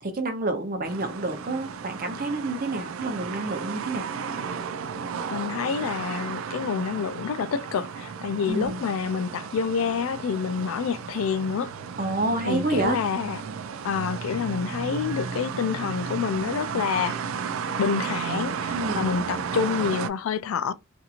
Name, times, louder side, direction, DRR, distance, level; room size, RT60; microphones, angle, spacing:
voice 1, 0.0-4.1 8.4-8.8 12.0-13.0 18.7-19.0, right 2 dB, 45° right, 0.7 m, -28 dB
sound 1, 0.8-20.1, right 6 dB, 80° right, 0.4 m, -33 dB
voice 2, 5.3-11.7 12.5-13.4 13.8-17.2 17.8-20.7, left 6 dB, 90° left, 0.3 m, -28 dB
2.8 x 2.6 x 2.4 m
head